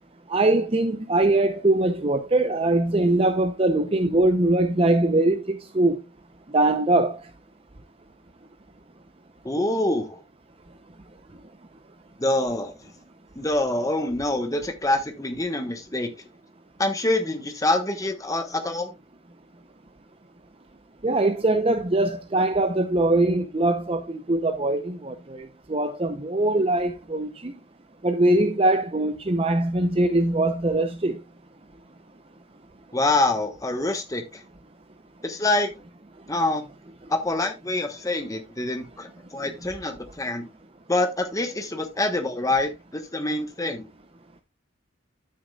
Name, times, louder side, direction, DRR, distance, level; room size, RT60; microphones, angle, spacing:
voice 1, 0.3-6.0 6.5-7.2 21.0-27.5 28.0-31.2, right 2 dB, 25° right, 0.6 m, -22 dB
voice 2, 9.4-10.2 12.2-12.7 13.3-16.1 16.8-18.9 32.9-34.4 35.2-35.7 36.3-36.7 37.1-40.5 40.9-43.9, left 2 dB, 15° left, 1.2 m, -26 dB
13.0 x 6.5 x 2.3 m
head